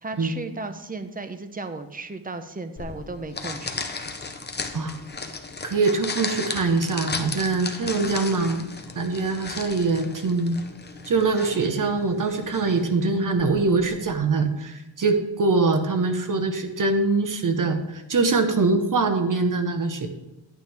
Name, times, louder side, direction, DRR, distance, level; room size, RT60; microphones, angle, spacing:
voice 1, 0.0-3.8, right 3 dB, 20° right, 9 dB, 0.8 m, -35 dB
sound 1, 2.8-14.1, left 4 dB, 20° left, 0.9 m, -35 dB
voice 2, 5.6-10.6 11.1-20.1, right 3 dB, 45° right, 6 dB, 1.2 m, -23 dB
11.0 x 9.2 x 3.6 m, 0.95 s
wide cardioid pair, 125°, 46 cm